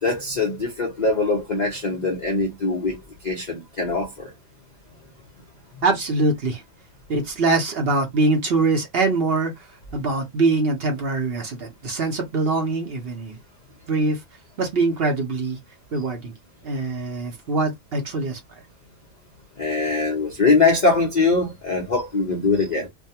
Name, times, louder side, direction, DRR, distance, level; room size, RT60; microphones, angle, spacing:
voice 1, 0.0-4.3 19.6-22.9, left 3 dB, 55° left, 0.4 m, -22 dB
voice 2, 5.8-6.6 7.1-13.4 13.9-14.2 14.6-15.6 15.9-16.3 16.6-18.6, right 3 dB, 50° right, 0.7 m, -23 dB
2.6 x 2.3 x 2.7 m
omnidirectional pair, 1.7 m